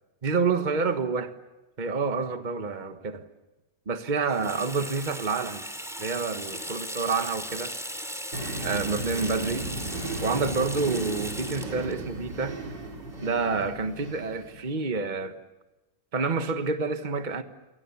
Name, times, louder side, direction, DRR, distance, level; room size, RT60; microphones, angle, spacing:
voice 1, 0.2-1.3 1.8-3.3 3.9-5.6 6.0-7.7 8.6-9.7 10.2-12.6 13.2-15.4 16.1-17.4, right 4 dB, 30° right, 1.5 m, -28 dB
Water tap faucet / Sink (filling or washing), 4.2-13.5, equal, ahead, 2.8 m, -38 dB
sound 1, 8.3-14.7, right 2 dB, 90° right, 4.4 m, -36 dB
29.0 x 24.5 x 7.2 m
omnidirectional pair, 1.8 m